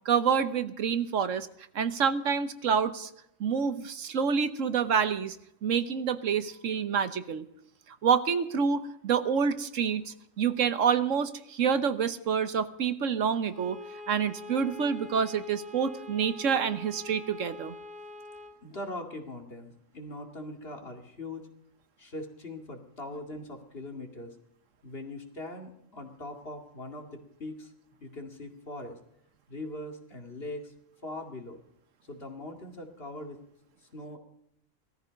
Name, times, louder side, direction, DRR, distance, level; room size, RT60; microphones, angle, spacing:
voice 1, 0.0-1.5 1.7-3.1 3.4-5.4 5.6-7.5 8.0-13.8 14.1-17.7, right 6 dB, 80° right, 12 dB, 1.4 m, -27 dB
Bowed string instrument, 13.4-18.6, left 3 dB, 45° right, 2.1 m, -45 dB
voice 2, 18.6-21.5 22.0-24.3 24.8-27.7 28.0-29.0 29.5-30.7 31.0-31.6 32.1-33.4 33.9-34.2, left 2 dB, 50° left, 3 dB, 2.5 m, -41 dB
18.5 x 14.0 x 5.2 m, 0.75 s
omnidirectional pair, 1.3 m